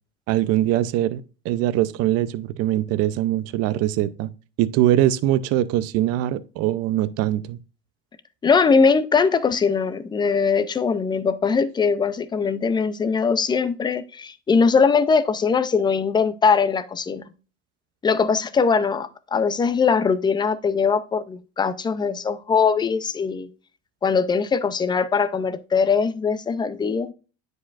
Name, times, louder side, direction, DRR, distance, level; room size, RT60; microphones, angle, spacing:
voice 1, 0.3-4.3 4.6-7.6, right 13 dB, 55° right, 0.6 m, -22 dB
voice 2, 8.4-17.2 18.0-23.5 24.0-27.1, left 5 dB, 15° left, 0.5 m, -21 dB
9.5 x 4.9 x 2.4 m
cardioid pair, 130°, 29 cm